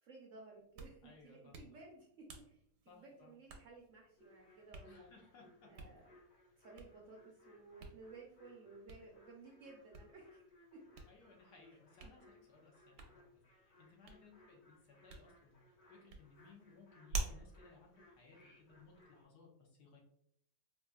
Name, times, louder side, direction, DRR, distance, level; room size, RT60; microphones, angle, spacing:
voice 1, 0.0-5.1 5.7-6.1 6.6-10.4 10.7-10.8 12.0-12.1 14.4-14.5, right 3 dB, 65° right, -1 dB, 0.8 m, -57 dB
Hands, 0.5-19.0, right 4 dB, 85° right, 1.3 m, -51 dB
voice 2, 1.0-1.5 2.9-3.3 4.8-5.7 11.1-14.6 14.9-15.6 15.9-20.0, left 4 dB, 75° left, -1 dB, 1.4 m, -62 dB
sound 1, 4.2-19.2, left 2 dB, 50° left, 1.0 m, -66 dB
4.0 x 2.4 x 2.2 m, 0.70 s
omnidirectional pair, 1.8 m